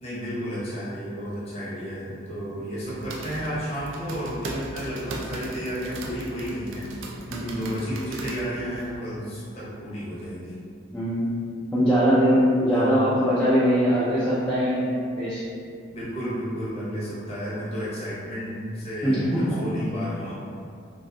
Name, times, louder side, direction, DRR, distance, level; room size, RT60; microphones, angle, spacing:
voice 1, 0.0-6.9 7.5-10.6 12.7-13.0 15.9-20.3, equal, 30° left, -9 dB, 0.7 m, -32 dB
sound 1, 2.7-9.0, right 2 dB, 80° right, 0.3 m, -38 dB
voice 2, 7.3-7.7 10.9-11.3 11.7-15.4 19.0-19.6, equal, 5° left, -12 dB, 0.3 m, -22 dB
2.4 x 2.2 x 2.6 m, 2.4 s
head